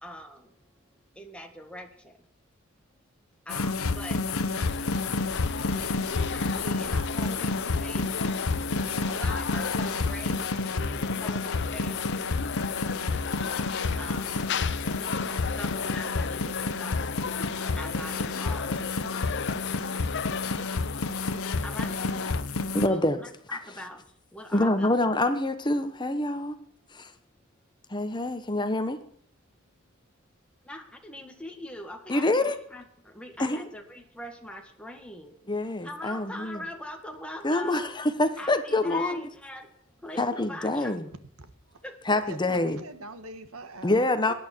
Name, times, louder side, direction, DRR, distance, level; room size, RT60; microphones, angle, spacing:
voice 1, 0.0-0.5 1.2-2.1 3.5-4.2 5.7-5.9 6.3-8.1 9.1-12.0 14.0-14.4 15.2-17.1 17.8-18.8 21.6-22.0 22.8-24.0 24.3-24.9 30.7-35.3 35.8-38.0 38.4-39.7 40.0-41.0 41.8-42.0, left 1 dB, 5° left, 3 dB, 1.8 m, -42 dB
sound 1, 3.5-22.9, left 3 dB, 85° left, 1.0 m, -30 dB
sound 2, 4.6-22.4, left 6 dB, 55° left, 0.7 m, -36 dB
voice 2, 22.7-23.2 23.5-23.6 24.5-26.5 26.9-27.1 27.9-29.0 32.1-32.6 33.4-33.7 35.5-36.6 37.4-39.2 40.2-41.0 42.1-42.8 43.8-44.3, left 2 dB, 20° left, 9 dB, 1.1 m, -26 dB
voice 3, 42.2-44.3, right 2 dB, 90° right, 10 dB, 1.6 m, -43 dB
18.5 x 11.0 x 4.6 m, 0.65 s
head